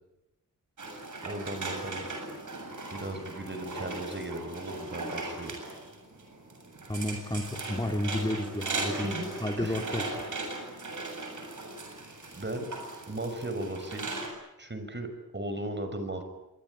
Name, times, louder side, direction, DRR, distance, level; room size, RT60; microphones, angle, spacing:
sound 1, 0.8-14.3, right 2 dB, 70° right, 7.8 m, -38 dB
voice 1, 1.2-2.1 2.9-5.5 8.9-9.3 9.6-9.8 12.3-12.7 13.1-14.1 14.6-16.2, right 1 dB, 35° right, 7 dB, 6.0 m, -36 dB
voice 2, 6.9-9.1 9.4-10.0, left 1 dB, 15° left, 4 dB, 3.2 m, -31 dB
26.0 x 22.0 x 10.0 m, 0.93 s
wide cardioid pair, 85°, 32 cm